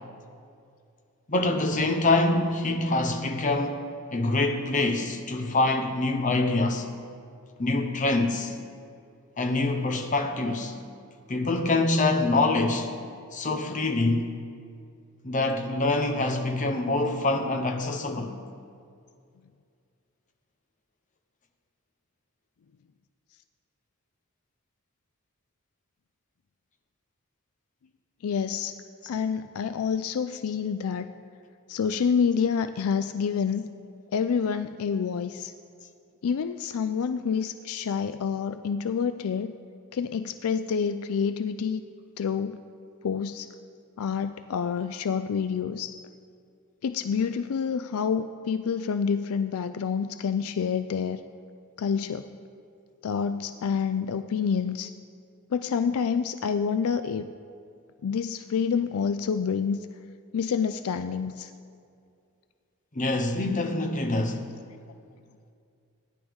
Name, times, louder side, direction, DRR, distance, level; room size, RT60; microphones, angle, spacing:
voice 1, 1.3-3.8 4.1-6.9 7.6-8.5 9.4-10.7 11.3-12.9 13.3-14.3 15.2-18.3 62.9-64.4, left 2 dB, 35° left, 0.9 m, -25 dB
voice 2, 28.2-28.8 29.1-31.1 31.7-33.7 34.1-35.5 36.2-39.6 39.9-41.8 42.2-42.6 43.0-43.5 44.0-46.0 46.8-51.2 51.8-52.3 53.0-54.9 55.5-57.2 58.0-59.8 60.3-61.5, left 6 dB, 70° left, 0.4 m, -28 dB
17.0 x 10.5 x 3.6 m
head